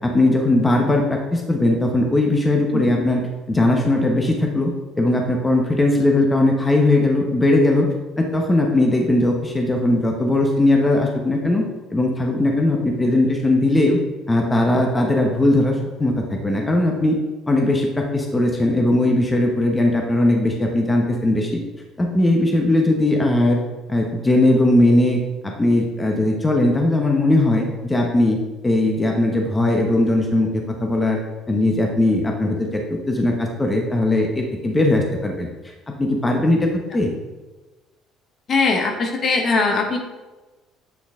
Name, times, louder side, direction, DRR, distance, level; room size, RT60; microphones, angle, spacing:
voice 1, 0.0-3.2 3.5-7.9 8.2-11.6 11.9-14.0 14.3-17.2 17.5-21.6 22.0-23.6 23.9-28.4 28.6-31.2 31.5-35.7 36.0-37.1, left 1 dB, 20° left, 1 dB, 0.9 m, -19 dB
voice 2, 38.5-40.0, left 3 dB, 45° left, 3 dB, 1.2 m, -20 dB
8.3 x 3.9 x 3.6 m, 1.2 s
supercardioid pair, 85°, 0 cm